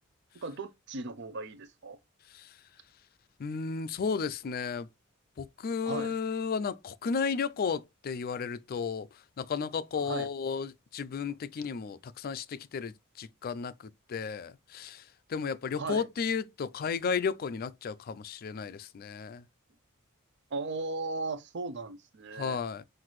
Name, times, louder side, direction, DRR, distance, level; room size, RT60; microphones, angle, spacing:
voice 1, 0.4-2.0 5.8-6.1 10.0-10.3 15.8-16.0 20.5-22.6, right 3 dB, 55° right, 0.6 m, -37 dB
voice 2, 3.4-4.9 5.4-19.4 22.3-22.8, left 5 dB, 45° left, 0.4 m, -34 dB
5.8 x 2.6 x 3.1 m
head